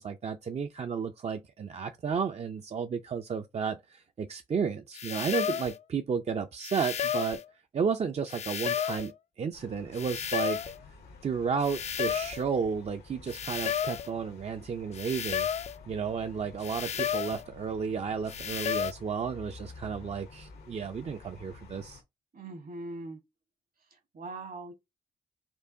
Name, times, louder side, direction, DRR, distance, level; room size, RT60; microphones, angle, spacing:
voice 1, 0.0-7.4 7.7-10.7 11.2-15.5 15.9-22.0, right 6 dB, 40° right, 0.4 m, -32 dB
sound 1, 4.9-5.8 6.6-7.4 8.3-9.1 9.9-10.8 11.6-12.4 13.3-14.1 14.9-15.8 16.6-17.4 18.3-18.9, left 8 dB, 45° left, 0.4 m, -32 dB
sound 2, 9.5-22.0, left 4 dB, 85° left, 1.0 m, -51 dB
voice 2, 22.3-23.2 23.9-24.7, right 2 dB, 60° right, 1.3 m, -41 dB
4.5 x 2.5 x 2.7 m
cardioid pair, 60°, 16 cm